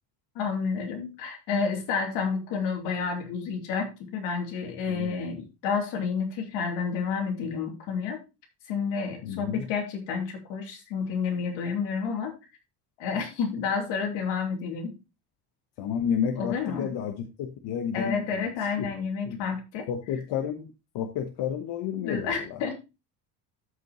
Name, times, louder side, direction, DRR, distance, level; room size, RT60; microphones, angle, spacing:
voice 1, 0.3-8.2 8.7-12.4 13.0-14.9 16.4-16.9 17.9-19.9 22.1-22.7, left 5 dB, 90° left, 3 dB, 3.0 m, -30 dB
voice 2, 9.2-9.6 15.8-18.4 18.8-18.9 19.2-19.4 19.9-22.6, left 8 dB, 65° left, 7 dB, 1.1 m, -31 dB
13.0 x 5.5 x 3.0 m, 0.27 s
cardioid pair, 145°, 42 cm